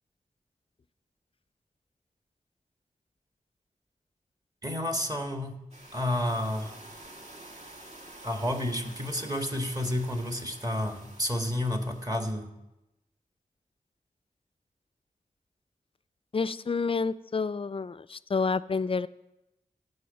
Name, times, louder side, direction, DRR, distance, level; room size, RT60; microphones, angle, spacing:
voice 1, 4.6-5.6 5.9-6.7 8.2-12.5, left 1 dB, 25° right, 4 dB, 1.6 m, -30 dB
sound 1, 5.7-12.3, right 1 dB, 50° right, 2.0 m, -49 dB
voice 2, 16.3-19.1, left 4 dB, 40° left, 16 dB, 0.4 m, -29 dB
16.0 x 5.6 x 5.2 m, 0.92 s
cardioid pair, 45°, 15 cm